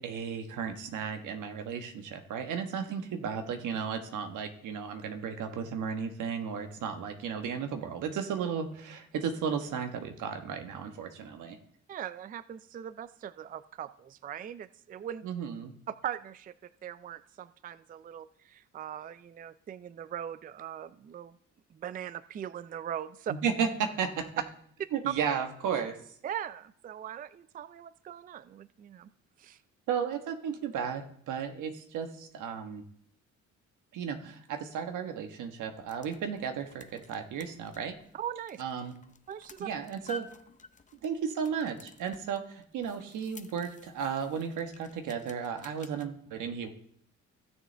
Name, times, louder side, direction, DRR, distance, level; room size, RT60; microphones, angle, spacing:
voice 1, 0.0-11.6 15.2-15.7 23.3-24.3 24.9-26.0 29.9-32.8 33.9-37.9 38.6-38.9 39.6-40.3 41.0-46.7, right 7 dB, 80° right, 6 dB, 1.3 m, -34 dB
voice 2, 11.9-15.3 15.9-21.4 21.7-23.3 26.2-29.1 29.4-29.6 38.1-38.6 39.3-39.7, right 10 dB, 30° right, 15 dB, 0.3 m, -40 dB
sound 1, 35.6-46.1, left 3 dB, 25° left, 0.7 m, -52 dB
16.0 x 6.8 x 3.3 m, 0.65 s
cardioid pair, 90°, 30 cm